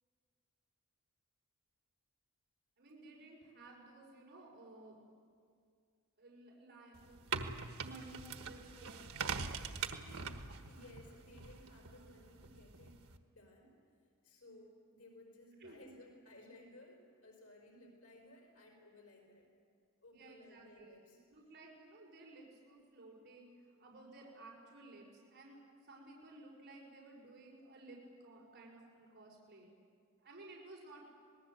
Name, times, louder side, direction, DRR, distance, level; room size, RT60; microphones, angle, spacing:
voice 1, 2.8-5.0 6.2-7.4 7.8-9.0 15.6-15.8 20.1-21.0 21.3-23.5 23.8-25.6 25.9-29.7 30.2-31.0, right 2 dB, 50° right, -4 dB, 5.9 m, -55 dB
sound 1, 6.9-13.2, right 5 dB, 80° right, 1.4 m, -43 dB
voice 2, 10.6-13.0 13.3-13.8 14.2-19.5 20.0-21.2, left 1 dB, 80° left, 0 dB, 4.9 m, -59 dB
26.0 x 19.5 x 8.0 m, 2.2 s
head